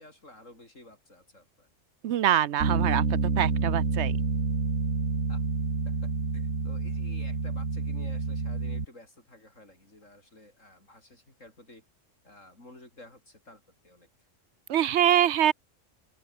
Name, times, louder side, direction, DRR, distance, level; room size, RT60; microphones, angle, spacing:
voice 1, 0.0-1.7 5.3-5.4 5.8-11.9 12.2-14.1, left 1 dB, 85° left, 8.4 m, -52 dB
voice 2, 2.0-3.0 3.4-4.1 14.7-15.5, right 11 dB, 70° right, 0.9 m, -24 dB
Bass guitar, 2.6-8.9, right 4 dB, 85° right, 2.9 m, -28 dB
open air
omnidirectional pair, 1.3 m